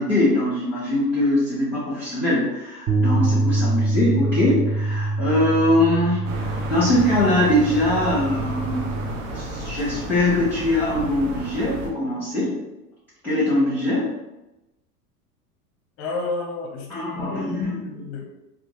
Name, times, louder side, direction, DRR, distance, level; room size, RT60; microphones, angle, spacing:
voice 1, 0.0-8.9 9.3-12.6 13.2-14.1 16.9-18.0, left 1 dB, 5° left, -9 dB, 1.1 m, -22 dB
Bass guitar, 2.9-9.1, right 2 dB, 20° right, 0.7 m, -25 dB
sound 1, 6.2-11.9, right 2 dB, 55° right, 0.7 m, -32 dB
voice 2, 16.0-18.2, left 3 dB, 30° left, 3 dB, 0.7 m, -31 dB
4.2 x 2.5 x 3.0 m, 0.97 s
figure-of-eight pair, 85°, 46 cm